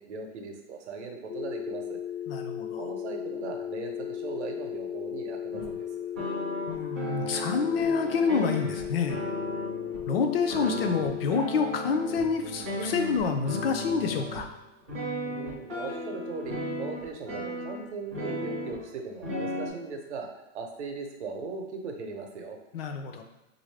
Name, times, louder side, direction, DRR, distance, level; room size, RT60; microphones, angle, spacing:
voice 1, 0.0-2.0 2.8-6.1 15.2-20.3 20.5-22.6, right 4 dB, 65° right, 3 dB, 0.7 m, -39 dB
sound 1, 1.3-11.3, left 10 dB, 80° left, 1.0 m, -36 dB
voice 2, 2.3-2.9 6.7-9.2 10.1-14.5 22.7-23.2, left 5 dB, 55° left, 6 dB, 0.4 m, -28 dB
sound 2, 5.5-5.8 6.2-10.0 10.5-14.5 14.9-18.8 19.2-19.7, equal, 15° right, 0.4 m, -35 dB
3.5 x 2.6 x 3.2 m, 1.0 s
supercardioid pair, 175°, 37 cm